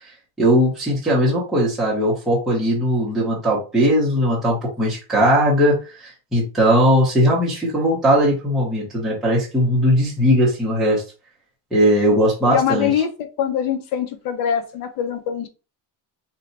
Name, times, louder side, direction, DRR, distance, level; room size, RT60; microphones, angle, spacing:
voice 1, 0.4-11.0 11.7-12.9, equal, ahead, -6 dB, 0.7 m, -19 dB
voice 2, 12.5-15.5, left 9 dB, 55° left, 8 dB, 0.6 m, -23 dB
2.7 x 2.1 x 3.9 m, 0.33 s
cardioid pair, 155°, 44 cm